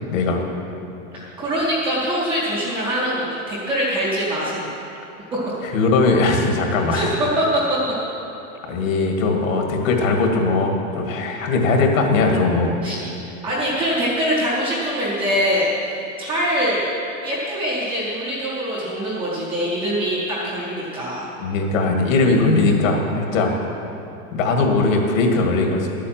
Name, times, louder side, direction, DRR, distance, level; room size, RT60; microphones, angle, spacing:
voice 1, 0.1-0.4 5.7-7.1 8.6-12.7 21.4-23.5 24.3-25.9, left 3 dB, 70° left, 2 dB, 2.2 m, -19 dB
voice 2, 1.1-4.7 6.9-7.1 7.4-7.5 12.8-13.0 13.4-16.9 17.2-21.3, equal, 5° right, -11 dB, 0.3 m, -23 dB
11.0 x 8.4 x 7.5 m, 3.0 s
supercardioid pair, 170°, 41 cm